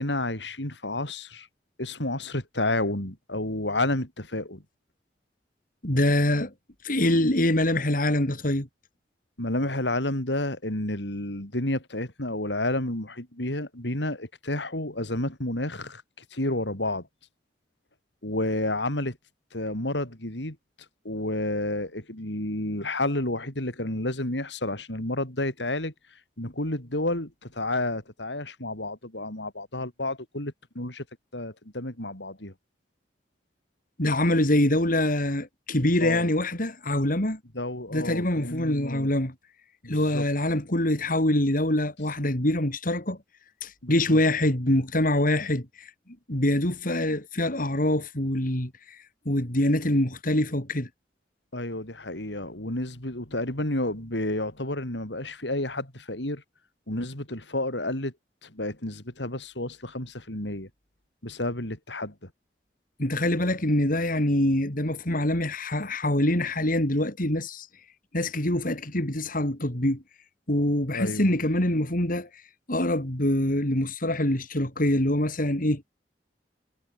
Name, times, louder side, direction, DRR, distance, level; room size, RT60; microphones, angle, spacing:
voice 1, 0.0-1.5 1.8-4.6 9.4-17.1 18.2-19.2 19.5-20.6 21.0-25.9 26.4-31.0 31.3-32.5 36.0-36.3 37.5-39.1 39.8-40.2 43.8-44.2 51.5-56.4 56.9-58.1 58.4-60.7 61.2-62.3 70.9-71.3, left 1 dB, 85° left, 6.0 m, -30 dB
voice 2, 5.8-6.5 6.8-8.7 34.0-37.4 37.9-39.3 39.9-43.2 43.6-45.9 46.3-50.9 63.0-67.7 68.1-70.0 70.5-72.4 72.7-75.8, left 1 dB, 50° left, 4.7 m, -25 dB
head